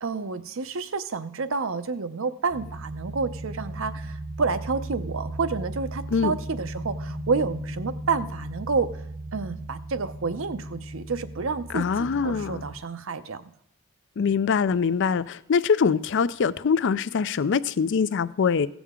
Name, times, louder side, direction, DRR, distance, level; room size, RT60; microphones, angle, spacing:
voice 1, 0.0-8.9 9.3-13.4, right 4 dB, 60° right, 0.6 m, -29 dB
sound 1, 2.5-12.8, right 1 dB, 90° right, 1.6 m, -36 dB
voice 2, 11.7-12.6 14.2-18.7, left 6 dB, 55° left, 0.4 m, -23 dB
16.5 x 7.2 x 3.7 m
head